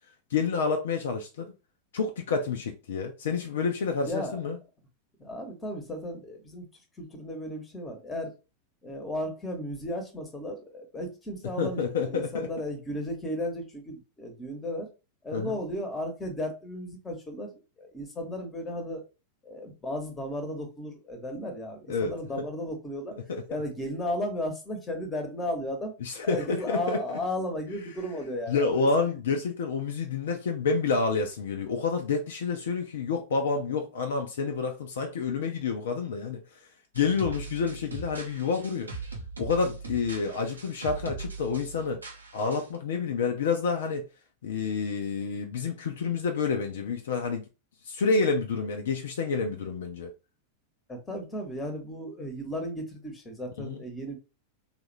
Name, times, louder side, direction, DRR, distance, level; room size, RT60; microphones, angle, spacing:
voice 1, 0.3-1.5 1.9-4.6 11.6-12.5 15.3-15.6 21.9-22.4 23.3-23.4 26.0-27.2 28.5-36.4 36.9-38.9 39.4-42.0 42.3-44.1 44.4-47.4 47.9-50.1 53.6-53.8, left 4 dB, 60° left, 0.5 m, -29 dB
voice 2, 4.0-4.4 5.2-6.7 7.0-8.3 8.8-14.9 15.2-17.5 17.8-19.0 19.4-23.2 23.5-28.9 50.9-54.2, left 1 dB, 15° left, 1.1 m, -35 dB
sound 1, 36.9-42.8, right 3 dB, 80° right, 0.8 m, -40 dB
3.5 x 2.5 x 3.1 m
figure-of-eight pair, 90°, 0 cm